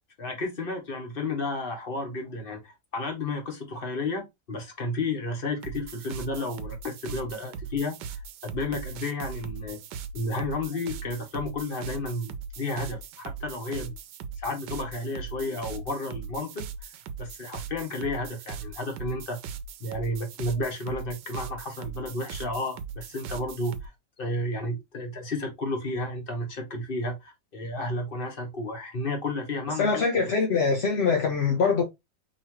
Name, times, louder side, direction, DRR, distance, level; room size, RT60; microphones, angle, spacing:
voice 1, 0.2-9.8 10.1-14.0 14.4-16.6 17.2-19.4 19.8-23.9 24.2-29.9, left 2 dB, 35° left, 1.3 m, -32 dB
sound 1, 5.6-23.9, right 6 dB, 80° right, 1.3 m, -39 dB
voice 2, 29.8-31.8, left 5 dB, 50° left, 0.8 m, -23 dB
5.0 x 3.1 x 3.0 m
omnidirectional pair, 1.9 m